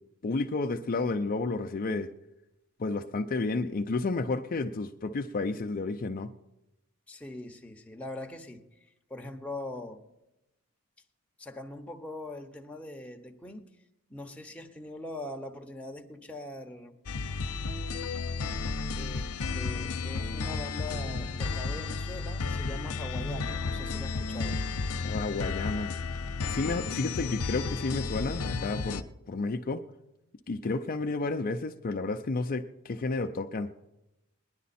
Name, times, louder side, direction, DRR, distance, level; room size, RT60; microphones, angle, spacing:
voice 1, 0.2-2.1 2.8-6.3 25.0-26.0 26.5-29.8 30.5-33.7, left 3 dB, 40° left, 0.5 m, -31 dB
voice 2, 7.1-10.0 11.4-13.7 14.1-17.0 18.9-24.6, left 2 dB, 5° left, 0.9 m, -42 dB
sound 1, 17.1-29.0, left 4 dB, 90° left, 0.7 m, -33 dB
20.0 x 10.5 x 4.2 m
head